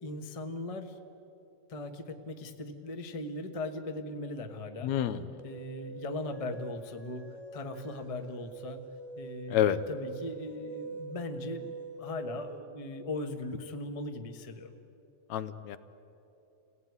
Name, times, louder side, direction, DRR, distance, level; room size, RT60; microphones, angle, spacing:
voice 1, 0.0-1.0 1.7-4.9 5.4-8.8 9.2-11.7 12.0-14.7, left 2 dB, 35° left, 5 dB, 0.5 m, -39 dB
voice 2, 4.8-5.4 9.5-9.8 15.3-15.8, left 10 dB, 80° left, 12 dB, 2.1 m, -28 dB
sound 1, 5.4-12.6, right 3 dB, 20° right, 1.2 m, -44 dB
29.0 x 17.5 x 9.6 m, 3.0 s
omnidirectional pair, 3.3 m